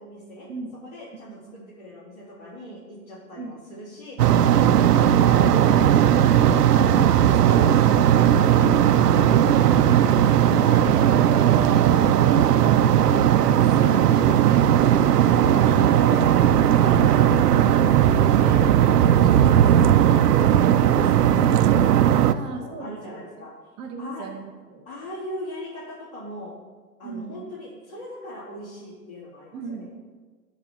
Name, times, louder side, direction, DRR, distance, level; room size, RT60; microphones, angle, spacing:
voice 1, 0.0-0.5 0.8-6.4 6.7-7.1 7.5-9.4 9.7-13.0 13.4-15.0 15.4-16.2 16.7-18.6 19.1-23.5 24.0-24.3 24.8-26.5 27.0-29.9, left 1 dB, 40° left, -9 dB, 3.4 m, -40 dB
voice 2, 1.3-1.7 3.3-3.5 22.3-23.4 23.8-24.8 27.0-27.4 29.5-29.9, right 4 dB, 10° right, 2 dB, 0.5 m, -38 dB
sound 1, 4.2-22.3, right 10 dB, 75° right, 0.6 m, -17 dB
11.5 x 4.2 x 6.9 m, 1.4 s
hypercardioid pair, 135°, 47 cm